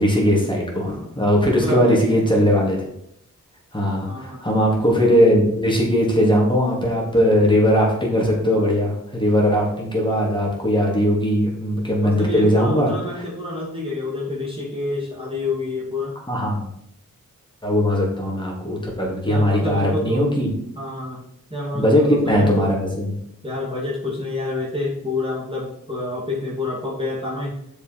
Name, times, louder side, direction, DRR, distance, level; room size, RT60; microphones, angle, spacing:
voice 1, 0.0-2.8 3.7-12.9 16.3-16.7 17.6-20.5 21.7-23.1, equal, 15° left, -3 dB, 3.4 m, -19 dB
voice 2, 1.4-2.2 4.0-4.5 12.0-16.2 19.2-20.3 20.7-21.2 21.5-22.7 23.4-27.6, left 2 dB, 15° right, -5 dB, 2.5 m, -28 dB
6.7 x 5.4 x 5.8 m, 0.75 s
cardioid pair, 50°, 34 cm